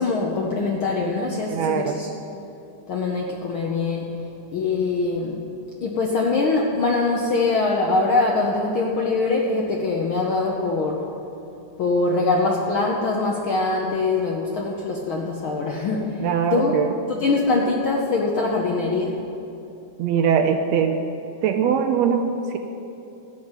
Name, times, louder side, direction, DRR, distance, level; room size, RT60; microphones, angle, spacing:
voice 1, 0.0-2.1 2.9-4.2 4.5-5.4 5.8-11.0 11.8-16.7 17.1-19.2, left 3 dB, 70° left, -1 dB, 1.2 m, -23 dB
voice 2, 1.5-2.0 16.2-16.9 20.0-21.0 21.4-22.6, right 7 dB, 75° right, 6 dB, 1.7 m, -21 dB
14.0 x 5.9 x 9.0 m, 3.0 s
omnidirectional pair, 3.4 m